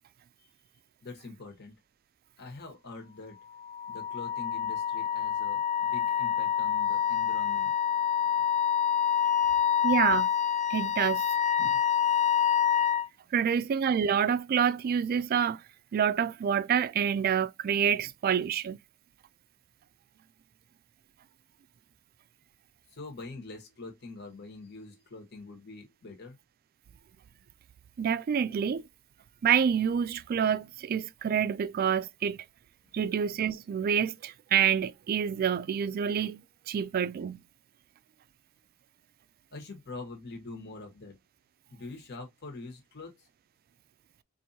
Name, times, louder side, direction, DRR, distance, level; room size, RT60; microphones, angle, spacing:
voice 1, 1.0-1.7 2.4-3.4 3.9-8.5 22.9-26.4 32.8-33.0 39.5-41.2 41.7-43.3, left 3 dB, 55° left, 1.3 m, -45 dB
Wind instrument woodwind instrument, 3.6-13.1, left 9 dB, 30° left, 0.4 m, -27 dB
voice 2, 9.8-10.3 10.7-11.2 11.6-11.7 13.3-15.6 15.9-18.8 28.0-28.8 29.4-32.4 32.9-37.4, right 8 dB, 45° right, 0.3 m, -27 dB
4.4 x 2.6 x 2.7 m
head